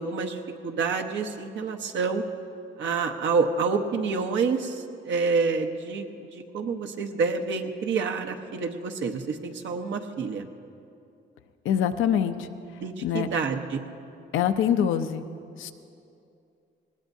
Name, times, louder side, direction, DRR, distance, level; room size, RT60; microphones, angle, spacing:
voice 1, 0.0-2.2 2.8-10.5 12.8-13.8, right 4 dB, 70° right, 4 dB, 1.0 m, -28 dB
voice 2, 11.6-12.5 13.0-13.3 14.3-15.2 15.6-15.7, left 9 dB, 80° left, 8 dB, 0.7 m, -24 dB
20.0 x 18.0 x 2.7 m, 2.6 s
cardioid pair, 90°, 20 cm